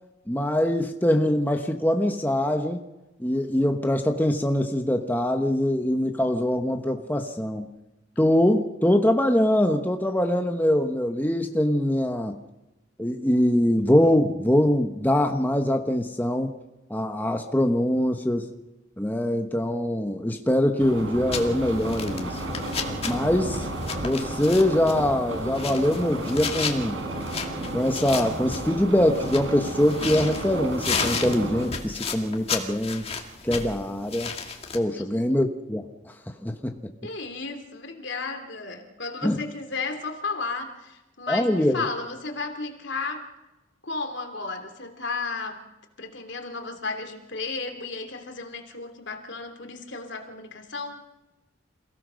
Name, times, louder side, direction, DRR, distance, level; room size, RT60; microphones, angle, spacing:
voice 1, 0.3-2.8 3.2-7.7 8.2-12.3 13.0-16.5 16.9-18.5 19.0-22.4 23.0-23.7 24.0-27.0 27.7-33.1 33.4-34.3 34.7-36.1 36.4-36.8 39.2-39.4 41.3-41.9, left 1 dB, 10° left, 4 dB, 1.1 m, -23 dB
sound 1, 20.8-31.7, right 1 dB, 90° right, 5.4 m, -33 dB
sound 2, 21.3-34.8, left 5 dB, 30° left, 2.2 m, -34 dB
voice 2, 37.0-43.3 43.8-45.6 46.0-51.0, left 3 dB, 65° left, 6 dB, 3.0 m, -34 dB
28.0 x 17.0 x 6.4 m, 1.0 s
head